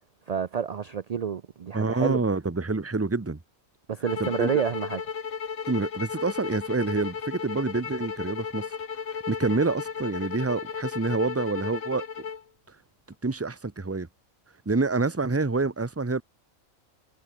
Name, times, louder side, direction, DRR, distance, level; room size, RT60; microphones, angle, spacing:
voice 1, 0.3-2.2 3.9-5.0, right 7 dB, 50° right, 0.4 m, -29 dB
voice 2, 1.7-3.4 4.2-4.5 5.7-8.7 9.3-12.1 13.2-14.1 14.7-16.2, right 3 dB, 15° right, 0.7 m, -27 dB
sound 1, 4.1-12.4, left 6 dB, 75° left, 1.9 m, -35 dB
omnidirectional pair, 1.4 m